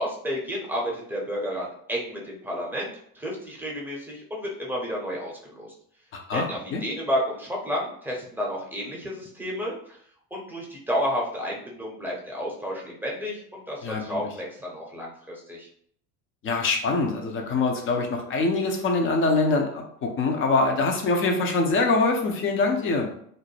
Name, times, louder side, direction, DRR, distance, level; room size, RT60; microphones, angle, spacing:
voice 1, 0.0-5.7 6.3-10.0 10.3-15.7, equal, 5° right, -3 dB, 0.7 m, -31 dB
voice 2, 6.3-6.8 13.8-14.2 16.4-23.1, left 3 dB, 25° left, 3 dB, 0.6 m, -24 dB
2.6 x 2.0 x 3.2 m, 0.65 s
figure-of-eight pair, 65°, 47 cm